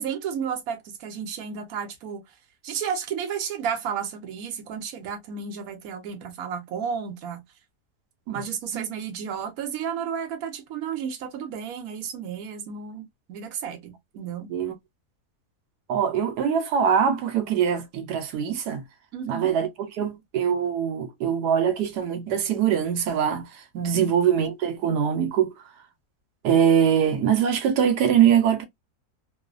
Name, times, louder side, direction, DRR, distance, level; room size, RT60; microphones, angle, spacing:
voice 1, 0.0-2.2 2.6-7.4 8.3-14.5 19.1-19.5 23.9-24.2, right 7 dB, 65° right, 1.2 m, -32 dB
voice 2, 15.9-18.8 19.3-19.7 20.0-23.5 23.7-25.5 26.4-28.7, right 8 dB, 90° right, 1.2 m, -22 dB
3.1 x 2.0 x 2.4 m
omnidirectional pair, 1.7 m